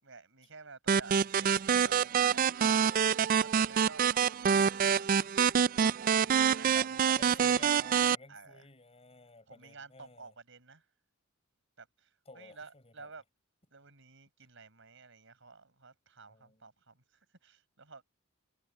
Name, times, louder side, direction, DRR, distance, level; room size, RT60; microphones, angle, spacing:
voice 1, 0.0-2.5 3.3-4.2 4.5-5.2 6.5-7.5 8.3-8.7 9.5-10.9 11.8-13.2 13.7-18.1, right 4 dB, 65° right, 6.9 m, -52 dB
sound 1, 0.9-8.2, right 7 dB, 40° right, 0.3 m, -26 dB
voice 2, 6.5-10.3 12.3-13.1 16.3-16.7, left 3 dB, 30° left, 7.3 m, -53 dB
head